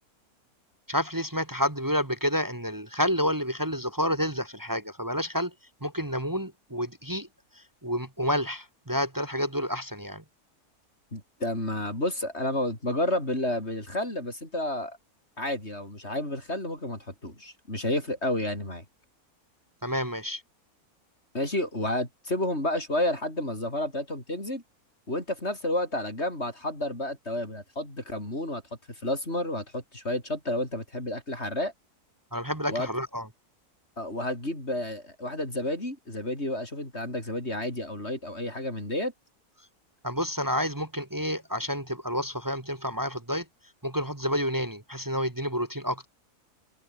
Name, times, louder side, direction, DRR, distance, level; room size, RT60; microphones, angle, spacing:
voice 1, 0.9-5.5 5.8-7.3 7.6-10.2 19.8-20.4 32.3-33.3 40.0-43.4 43.8-46.1, equal, 15° right, 1.5 m, -29 dB
voice 2, 11.1-15.0 15.4-18.8 21.3-24.6 25.1-28.6 28.9-31.7 32.7-32.9 34.0-39.1, left 1 dB, 45° left, 8.4 m, -31 dB
omnidirectional pair, 1.6 m